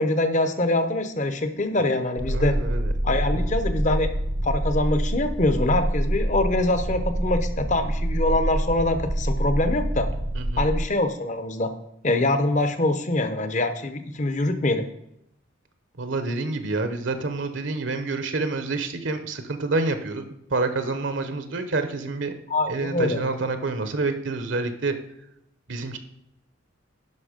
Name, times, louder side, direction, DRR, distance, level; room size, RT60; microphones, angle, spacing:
voice 1, 0.0-2.6 3.0-4.2 4.4-10.1 10.6-11.7 12.0-14.8 22.5-23.2, left 2 dB, 40° left, 9 dB, 0.8 m, -24 dB
sound 1, 2.2-10.9, right 1 dB, 30° right, 0.5 m, -26 dB
voice 2, 2.3-2.9 3.3-3.4 10.3-10.7 16.0-22.3 22.7-24.9 25.7-26.0, right 3 dB, 70° right, 9 dB, 0.9 m, -28 dB
11.0 x 5.7 x 5.1 m, 0.79 s
head